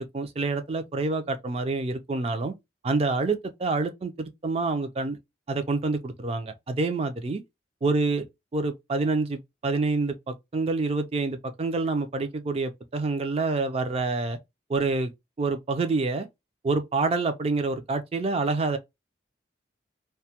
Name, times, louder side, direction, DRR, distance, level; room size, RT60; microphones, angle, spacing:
voice 1, 0.0-2.5 2.8-5.2 5.5-7.4 7.8-8.3 8.5-14.4 14.7-15.1 15.4-16.3 16.6-18.8, right 3 dB, 35° right, 0.4 m, -27 dB
2.2 x 2.1 x 2.7 m
head